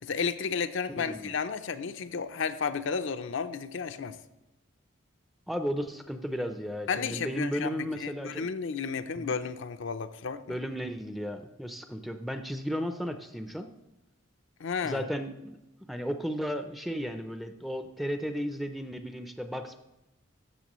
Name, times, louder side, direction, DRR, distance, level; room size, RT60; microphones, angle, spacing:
voice 1, 0.0-4.2 6.9-7.7 8.0-10.4 14.6-15.0, left 5 dB, 65° left, 9 dB, 0.5 m, -32 dB
voice 2, 1.0-1.3 5.5-8.5 9.2-9.3 10.4-13.7 14.8-15.6 15.9-19.8, equal, ahead, 7 dB, 0.5 m, -34 dB
13.5 x 6.7 x 3.0 m, 0.97 s
head